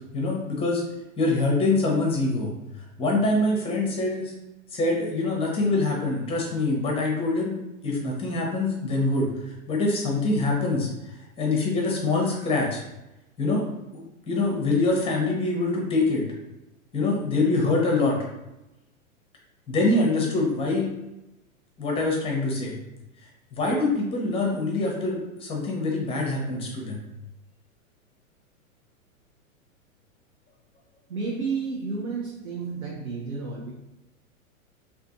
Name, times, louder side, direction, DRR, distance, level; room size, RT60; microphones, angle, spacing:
voice 1, 0.1-0.8 1.2-2.5 3.0-4.3 4.7-7.6 7.8-9.3 9.7-10.9 11.4-12.8 13.4-13.6 13.9-16.2 16.9-18.2 19.7-20.9 21.8-22.8 23.5-27.0, left 2 dB, 15° left, -1 dB, 0.6 m, -24 dB
voice 2, 31.1-33.7, right 4 dB, 85° right, -1 dB, 0.6 m, -31 dB
2.5 x 2.4 x 2.4 m, 0.94 s
hypercardioid pair, 105°, 41 cm